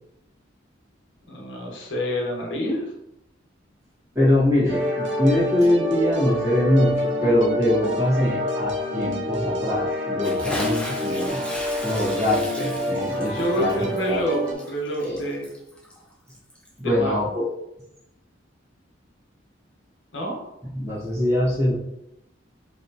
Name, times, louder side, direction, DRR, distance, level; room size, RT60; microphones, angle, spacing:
voice 1, 1.3-2.8 13.3-15.5 16.8-17.1 20.1-20.4, equal, 70° left, -1 dB, 0.9 m, -28 dB
voice 2, 4.1-11.4 11.8-13.8 14.1-14.2 15.0-15.2 16.8-17.4 20.7-21.7, left 1 dB, 15° right, -9 dB, 1.5 m, -23 dB
sound 1, 4.7-14.5, left 1 dB, 65° right, 0.6 m, -27 dB
Bathtub (filling or washing) / Splash splatter, 10.2-16.8, left 1 dB, 5° left, 0.6 m, -36 dB
4.2 x 2.9 x 2.7 m, 0.84 s
head